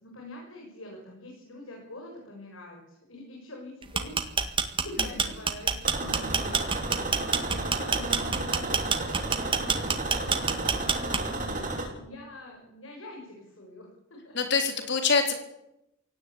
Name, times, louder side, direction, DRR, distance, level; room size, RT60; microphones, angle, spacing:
voice 1, 0.0-4.1 4.8-6.6 6.9-7.1 7.5-14.3, left 1 dB, 75° left, 0 dB, 6.8 m, -45 dB
sound 1, 3.8-11.5, right 5 dB, 25° right, 1.8 m, -27 dB
sound 2, 5.8-11.9, right 2 dB, 40° right, 7.3 m, -32 dB
voice 2, 14.3-15.3, left 5 dB, 60° left, 5 dB, 4.1 m, -25 dB
23.5 x 17.5 x 8.5 m, 0.87 s
head